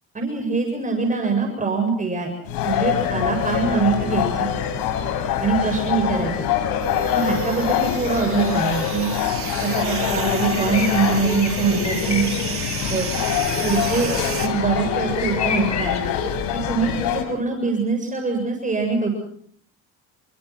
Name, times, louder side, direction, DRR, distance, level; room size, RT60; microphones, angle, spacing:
voice 1, 0.1-2.3 2.6-4.5 5.4-6.3 7.1-9.1 9.6-12.2 12.9-13.0 13.6-14.1 14.4-16.0 16.5-19.1, right 4 dB, 20° right, 3 dB, 7.5 m, -23 dB
sound 1, 2.5-17.2, left 8 dB, 80° left, 5.4 m, -24 dB
sound 2, 6.8-14.5, right 7 dB, 40° right, 5.1 m, -33 dB
sound 3, 9.7-16.0, left 7 dB, 55° left, 5.2 m, -34 dB
29.5 x 24.0 x 6.2 m, 0.62 s
cardioid pair, 100°, 34 cm